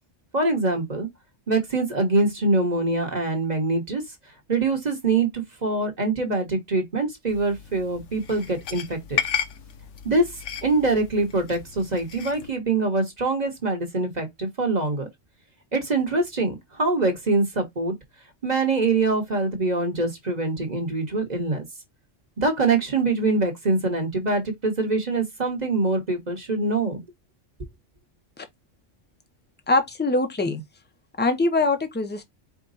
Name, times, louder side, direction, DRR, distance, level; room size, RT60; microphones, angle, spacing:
voice 1, 0.3-1.1 1.5-4.0 4.5-9.2 10.0-10.3 10.6-15.1 15.7-17.9 18.4-21.6 22.4-27.0, right 3 dB, 35° right, 1.2 m, -24 dB
sound 1, 7.3-12.5, left 8 dB, 70° left, 1.0 m, -34 dB
voice 2, 29.7-30.6 31.2-32.2, left 2 dB, 10° left, 0.5 m, -23 dB
4.9 x 2.2 x 3.9 m
omnidirectional pair, 1.3 m